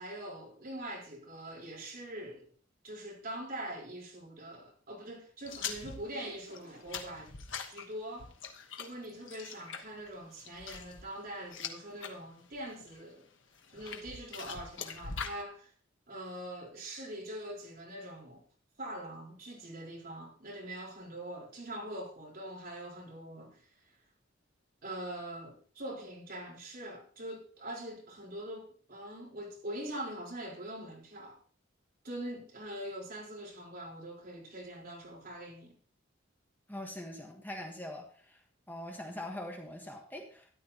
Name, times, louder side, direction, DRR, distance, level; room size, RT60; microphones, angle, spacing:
voice 1, 0.0-2.5 2.8-7.4 7.7-8.3 8.8-13.3 13.7-15.7 16.1-18.4 18.8-23.7 24.8-31.4 32.0-35.7, right 1 dB, 50° right, 4.1 m, -43 dB
sound 1, 5.5-12.1 12.5-13.0 13.6-15.4, left 6 dB, 75° left, 1.2 m, -43 dB
voice 2, 36.7-38.4 38.7-40.5, left 1 dB, 10° left, 1.4 m, -43 dB
13.0 x 11.0 x 2.9 m
head